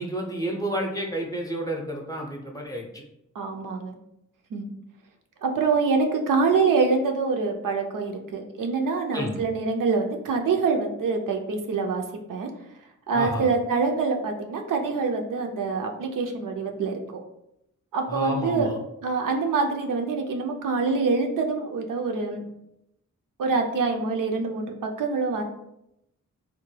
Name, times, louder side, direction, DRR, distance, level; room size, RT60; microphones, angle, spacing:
voice 1, 0.0-2.9 9.1-9.4 13.1-13.5 18.1-18.8, equal, 10° left, -1 dB, 0.6 m, -30 dB
voice 2, 3.4-4.0 4.5-4.7 5.4-12.0 12.3-12.5 13.1-17.0 17.9-18.7 19.0-22.5 23.4-25.4, right 4 dB, 85° right, 3 dB, 0.5 m, -25 dB
3.4 x 2.1 x 3.2 m, 0.81 s
wide cardioid pair, 90°, 31 cm